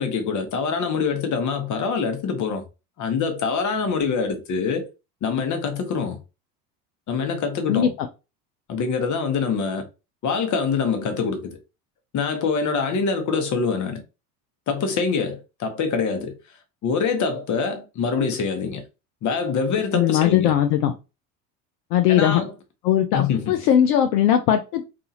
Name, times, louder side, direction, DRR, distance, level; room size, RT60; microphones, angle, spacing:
voice 1, 0.0-2.6 3.0-4.9 5.2-6.2 7.1-7.9 8.7-9.9 10.2-11.6 12.1-14.0 14.7-16.4 16.8-18.8 19.2-20.5 22.1-22.5 23.1-23.6, left 5 dB, 40° left, 0.9 m, -24 dB
voice 2, 7.7-8.1 19.9-20.9 21.9-22.4 22.8-24.8, left 10 dB, 70° left, 0.6 m, -19 dB
2.7 x 2.5 x 2.7 m
hypercardioid pair, 80°, 47 cm